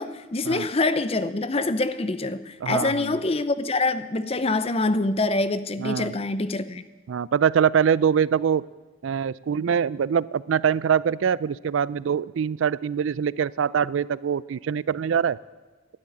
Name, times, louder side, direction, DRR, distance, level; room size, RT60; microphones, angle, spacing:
voice 1, 0.0-6.8, left 2 dB, 30° left, 0.6 m, -25 dB
voice 2, 2.6-3.2 5.8-6.1 7.1-8.6 9.0-15.4, right 7 dB, 80° right, 0.4 m, -24 dB
12.0 x 10.0 x 9.4 m
head